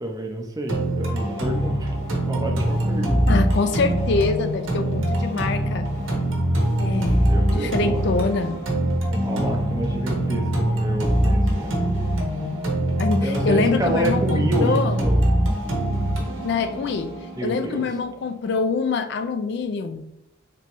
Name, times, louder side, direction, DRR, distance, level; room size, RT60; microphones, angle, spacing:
voice 1, 0.0-1.9 2.3-3.2 7.3-8.0 9.1-11.7 13.2-15.2 17.3-17.8, right 1 dB, 15° right, 2 dB, 0.4 m, -28 dB
sound 1, 0.7-18.7, right 1 dB, 70° right, 0.7 m, -23 dB
voice 2, 3.3-5.9 6.8-8.6 13.0-15.0 16.4-17.1 17.4-20.1, left 4 dB, 55° left, 10 dB, 0.3 m, -25 dB
3.3 x 3.0 x 2.9 m, 0.81 s
head